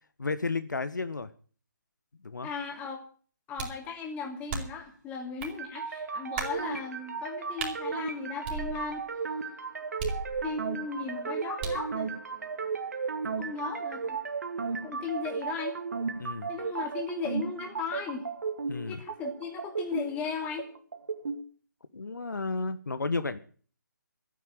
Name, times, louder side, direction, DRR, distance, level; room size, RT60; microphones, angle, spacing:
voice 1, 0.2-1.3 2.2-2.5 16.2-16.5 18.7-19.0 21.9-23.4, left 3 dB, 70° left, 12 dB, 1.3 m, -32 dB
voice 2, 2.4-3.0 3.5-9.1 10.4-12.1 13.4-14.2 14.8-15.8 16.5-18.3 18.9-20.6, left 5 dB, 15° left, 3 dB, 2.8 m, -37 dB
sound 1, 3.6-3.9 4.5-4.9 5.4-5.6 6.4-6.6 7.6-7.8 8.4-9.1 10.0-10.7 11.6-11.9, right 4 dB, 30° right, 4.1 m, -36 dB
sound 2, 5.4-21.4, right 5 dB, 55° right, 2.2 m, -35 dB
13.0 x 10.0 x 9.0 m, 0.44 s
figure-of-eight pair, 150°, 10 cm